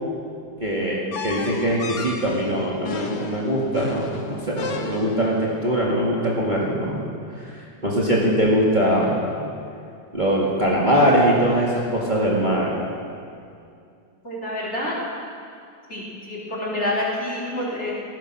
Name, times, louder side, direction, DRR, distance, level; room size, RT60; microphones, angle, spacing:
voice 1, 0.6-7.0 7.4-7.5 7.8-9.3 10.1-12.7, equal, 25° right, -5 dB, 2.0 m, -22 dB
sound 1, 1.1-5.4, left 4 dB, 70° left, 1.8 m, -33 dB
voice 2, 14.2-15.0 15.9-17.9, left 1 dB, 40° left, -5 dB, 3.9 m, -28 dB
15.5 x 14.0 x 6.3 m, 2.4 s
omnidirectional pair, 1.9 m